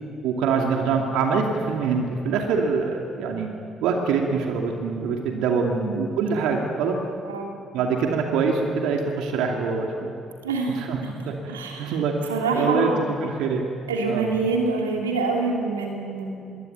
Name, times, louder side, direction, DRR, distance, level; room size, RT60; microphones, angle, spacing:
voice 1, 0.2-3.5 3.8-7.0 7.7-10.1 10.7-11.0 11.3-13.7 14.1-14.3, right 5 dB, 70° right, 1 dB, 2.6 m, -24 dB
voice 2, 10.4-11.1 11.5-12.0 12.3-13.1 13.9-16.6, right 3 dB, 85° right, 1 dB, 2.8 m, -26 dB
25.0 x 22.5 x 9.5 m, 2.5 s
figure-of-eight pair, 45°, 0 cm